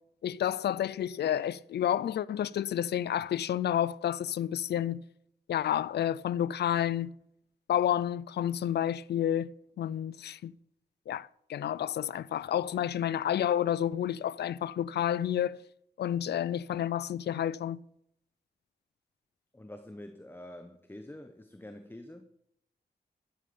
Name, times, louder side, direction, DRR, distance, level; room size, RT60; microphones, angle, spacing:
voice 1, 0.2-5.0 5.5-7.1 7.7-9.5 9.8-10.5 11.1-15.6 16.0-17.8, left 10 dB, 90° left, 0.4 m, -30 dB
voice 2, 19.5-22.3, left 1 dB, 15° left, 1.1 m, -46 dB
12.0 x 10.5 x 7.0 m
cardioid pair, 85°, 17 cm